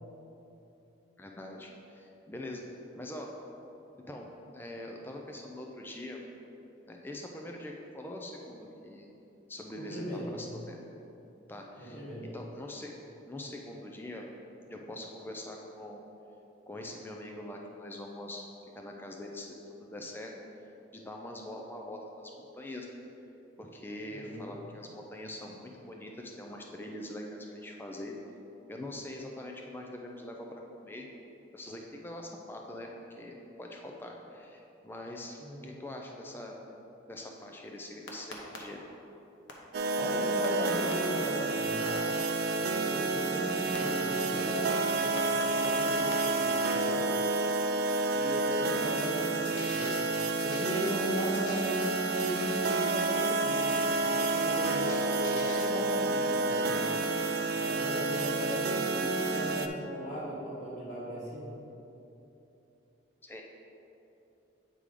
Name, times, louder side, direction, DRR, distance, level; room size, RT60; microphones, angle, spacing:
voice 1, 1.2-2.6 2.9-3.3 4.1-6.2 6.9-9.1 9.5-10.8 11.5-12.1 12.3-12.9 13.3-14.2 14.7-16.0 16.7-18.5 18.7-20.3 20.9-23.0 23.6-28.2 28.7-31.0 31.5-32.9 33.2-36.6 37.0-38.8 63.2-63.4, left 1 dB, 10° left, 0 dB, 0.4 m, -43 dB
voice 2, 9.8-10.4 11.8-12.3 24.1-24.6 35.4-35.8 40.0-42.2 42.7-47.1 48.1-50.0 50.4-56.8 57.5-61.5, equal, 40° left, -6 dB, 1.3 m, -37 dB
sound 1, 38.1-38.6 39.5-39.6 40.4-40.9 41.9-42.0 43.7-43.8 45.2-46.1 49.0-49.1 49.4-50.1 50.4-51.0 51.3-52.0 53.7-53.8 54.6-55.7, left 4 dB, 80° left, 1.0 m, -44 dB
sound 2, 39.7-59.7, right 3 dB, 55° right, 0.3 m, -29 dB
8.2 x 3.7 x 4.8 m, 2.9 s
head